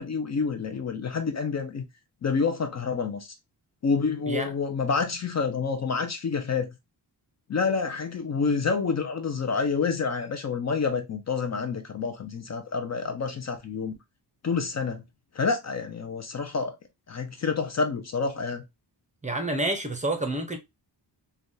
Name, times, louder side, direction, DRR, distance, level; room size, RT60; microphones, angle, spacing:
voice 1, 0.0-1.8 2.2-3.3 3.8-6.7 7.5-14.0 14.4-15.0 15.3-16.7 17.1-18.6, left 5 dB, 40° left, 0.5 m, -28 dB
voice 2, 19.2-20.6, right 2 dB, 15° right, 0.6 m, -28 dB
3.3 x 2.3 x 2.6 m
cardioid pair, 110°, 43 cm